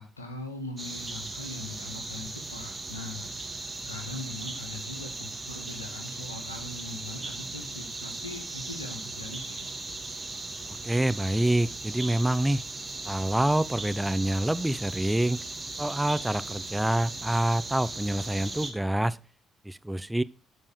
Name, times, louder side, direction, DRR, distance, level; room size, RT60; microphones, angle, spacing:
voice 1, 0.0-9.7, left 2 dB, 85° left, 5 dB, 1.5 m, -41 dB
sound 1, 0.8-18.7, right 3 dB, 25° right, 2.4 m, -38 dB
voice 2, 10.8-12.6 13.0-15.4 15.8-19.2 19.7-20.2, right 1 dB, 10° right, 16 dB, 0.5 m, -26 dB
12.0 x 5.4 x 6.6 m, 0.34 s
figure-of-eight pair, 45°, 0 cm